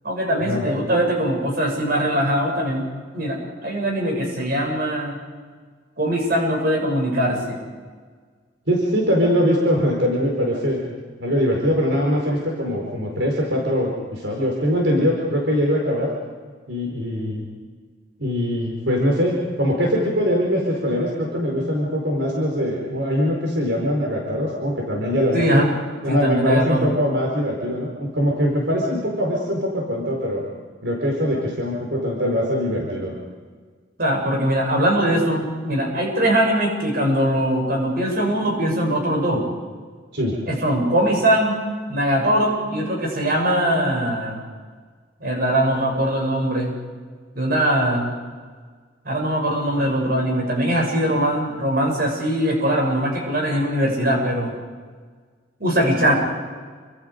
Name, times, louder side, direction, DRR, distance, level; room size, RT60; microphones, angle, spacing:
voice 1, 0.0-2.9 3.1-5.2 6.0-7.6 25.3-25.7 26.1-26.9 34.0-39.5 40.5-41.6 41.9-44.4 45.2-46.7 47.3-48.1 49.0-54.5 55.6-56.1, right 1 dB, 50° right, 0 dB, 7.6 m, -21 dB
voice 2, 8.7-10.8 11.2-16.1 16.7-17.5 18.2-25.6 26.0-30.4 30.8-33.1 40.1-40.4, equal, 75° right, -1 dB, 4.7 m, -22 dB
28.5 x 25.5 x 5.3 m, 1.5 s
head